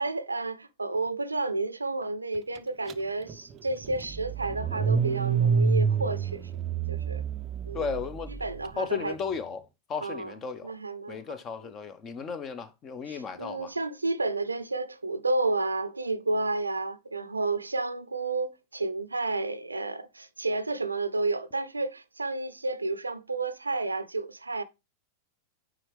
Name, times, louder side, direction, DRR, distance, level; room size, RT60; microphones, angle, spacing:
voice 1, 0.0-6.5 6.9-7.2 7.6-8.0 8.3-9.1 10.0-10.3 10.6-11.4 11.6-11.7 13.1-24.6, right 3 dB, 80° right, 0.5 m, -31 dB
Car / Engine starting, 2.9-3.0 3.3-8.5, right 6 dB, 30° right, 0.5 m, -28 dB
voice 2, 7.7-8.3 8.8-9.6 9.9-10.7 11.1-13.7, left 6 dB, 30° left, 0.8 m, -34 dB
8.9 x 3.8 x 3.3 m
figure-of-eight pair, 90°, 0 cm